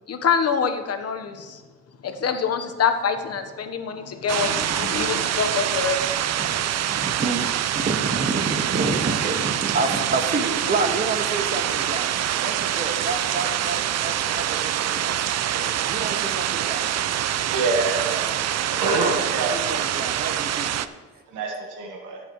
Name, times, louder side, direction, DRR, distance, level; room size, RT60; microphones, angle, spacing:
voice 1, 0.1-1.6 2.0-7.1, left 6 dB, 55° left, 7 dB, 1.2 m, -26 dB
sound 1, 4.3-20.9, right 11 dB, 60° right, 0.6 m, -25 dB
voice 2, 6.9-12.1 12.4-15.2 15.5-16.9 18.9-20.8, right 3 dB, 30° right, 5 dB, 1.6 m, -29 dB
voice 3, 17.4-18.3 18.8-19.5 21.3-22.2, right 3 dB, 85° right, 1 dB, 1.4 m, -25 dB
16.0 x 7.7 x 3.1 m, 1.4 s
cardioid pair, 90°, 30 cm